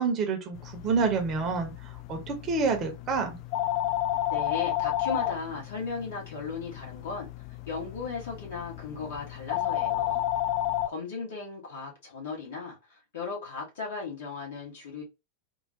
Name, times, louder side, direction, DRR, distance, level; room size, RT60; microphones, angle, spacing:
voice 1, 0.0-3.4, right 4 dB, 30° right, 0.9 m, -28 dB
sound 1, 0.5-10.9, left 13 dB, 40° left, 0.4 m, -32 dB
voice 2, 4.3-7.3 7.7-10.2 10.9-15.0, left 4 dB, 55° left, 1.8 m, -36 dB
3.6 x 2.3 x 2.7 m
figure-of-eight pair, 90°, 0 cm